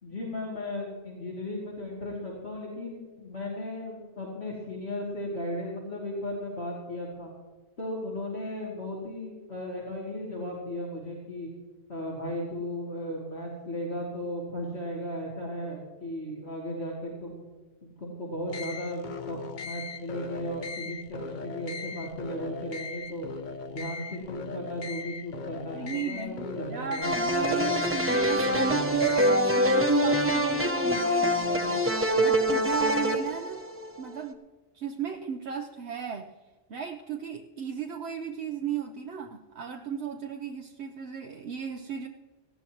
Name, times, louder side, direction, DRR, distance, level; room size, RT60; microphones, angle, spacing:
voice 1, 0.0-7.3 7.8-11.5 11.9-17.4 18.0-23.2 23.7-27.1, left 1 dB, 75° left, -4 dB, 3.0 m, -36 dB
sound 1, 18.5-29.4, left 5 dB, 50° left, 0.8 m, -39 dB
voice 2, 25.7-33.7 34.0-34.4 34.7-36.3 36.7-42.1, right 8 dB, 80° right, 4 dB, 1.0 m, -35 dB
sound 2, 27.0-34.0, equal, 15° right, 0.9 m, -25 dB
18.5 x 15.0 x 3.0 m, 1.3 s
omnidirectional pair, 1.1 m